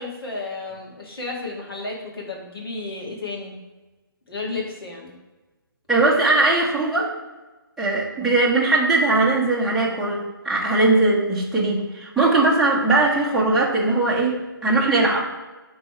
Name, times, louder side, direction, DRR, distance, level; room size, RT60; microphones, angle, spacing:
voice 1, 0.0-3.6 4.3-5.1, left 3 dB, 85° left, -2 dB, 2.1 m, -32 dB
voice 2, 5.9-7.1 7.8-14.4 14.6-15.2, right 2 dB, ahead, -7 dB, 1.0 m, -20 dB
5.9 x 3.9 x 4.5 m, 1.2 s
figure-of-eight pair, 145°, 12 cm